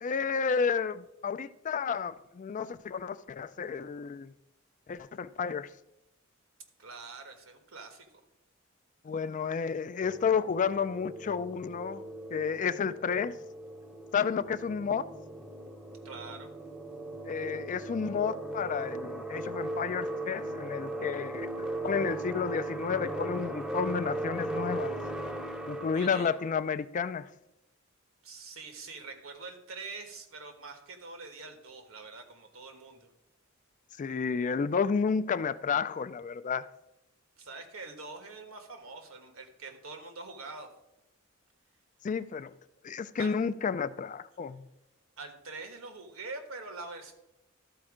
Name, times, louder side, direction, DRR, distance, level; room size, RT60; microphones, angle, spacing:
voice 1, 0.0-4.3 4.9-5.7 9.0-12.0 12.3-13.3 14.1-15.1 17.2-21.5 21.8-24.9 25.7-27.3 34.0-36.7 42.0-42.5 42.8-44.7, left 6 dB, 40° left, 0.3 m, -31 dB
voice 2, 6.8-8.1 16.0-16.5 25.9-26.3 28.2-33.1 37.4-40.7 43.2-43.3 45.2-47.1, right 3 dB, 85° right, 1.4 m, -44 dB
sound 1, 10.0-26.5, right 1 dB, 5° right, 0.6 m, -38 dB
12.5 x 4.3 x 4.9 m
head